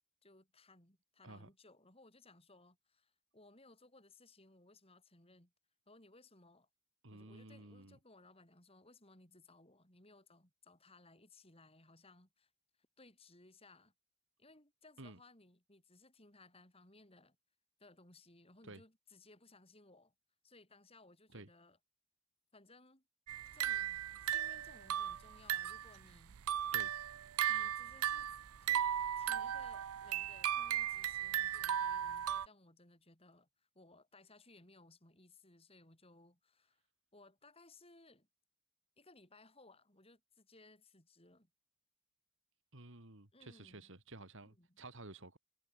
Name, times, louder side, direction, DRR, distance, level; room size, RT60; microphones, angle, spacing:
voice 1, 0.2-5.5 5.9-6.7 7.1-12.5 13.0-13.9 14.4-17.4 17.8-20.1 20.4-21.8 22.5-23.0 23.5-26.4 27.5-28.9 29.2-36.8 37.1-38.3 39.0-41.5 43.3-43.9 44.5-44.8, left 2 dB, 25° left, 7.0 m, -63 dB
voice 2, 7.0-8.0 15.0-15.2 18.6-18.8 21.3-21.5 26.7-26.9 42.7-45.4, right 2 dB, 60° right, 3.0 m, -53 dB
sound 1, 23.3-25.9 26.3-32.5, right 10 dB, 75° right, 0.5 m, -36 dB
head